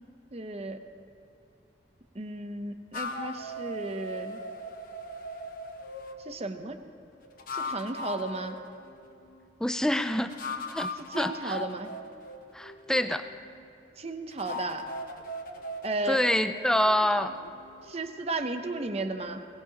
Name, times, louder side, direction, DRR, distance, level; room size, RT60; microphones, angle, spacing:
voice 1, 0.3-0.8 2.1-4.4 6.2-6.8 7.5-8.6 11.0-11.9 14.0-14.9 15.8-16.2 17.9-19.5, right 2 dB, 35° right, 7 dB, 0.8 m, -34 dB
sound 1, 2.9-6.2 7.2-9.4 10.3-13.6 14.3-17.9, left 2 dB, 50° left, 1.2 m, -39 dB
voice 2, 9.6-10.3 10.7-10.9 11.2-11.6 12.5-13.2 16.1-17.3, left 1 dB, 5° left, 9 dB, 0.4 m, -26 dB
21.5 x 19.0 x 2.9 m, 2.7 s
head